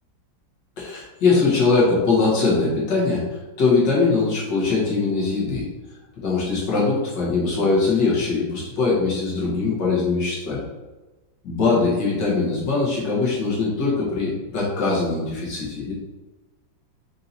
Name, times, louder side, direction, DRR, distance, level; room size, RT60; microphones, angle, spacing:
voice 1, 0.8-5.7 6.2-10.7 11.4-15.9, left 4 dB, 65° left, -5 dB, 1.9 m, -21 dB
5.5 x 2.8 x 2.6 m, 1.1 s
omnidirectional pair, 2.1 m